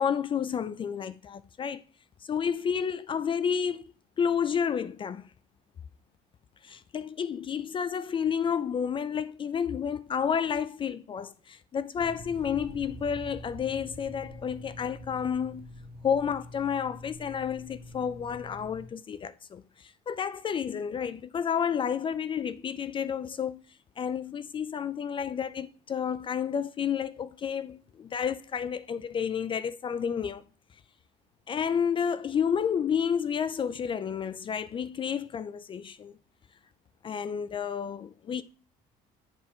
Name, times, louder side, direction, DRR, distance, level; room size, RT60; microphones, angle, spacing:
voice 1, 0.0-1.8 2.2-5.3 6.6-15.7 16.0-23.6 24.0-30.4 31.5-36.1 37.0-38.4, left 7 dB, 30° left, 0.4 m, -30 dB
sound 1, 11.9-18.9, equal, 65° right, 1.7 m, -45 dB
7.2 x 5.4 x 3.2 m
cardioid pair, 120°, 17 cm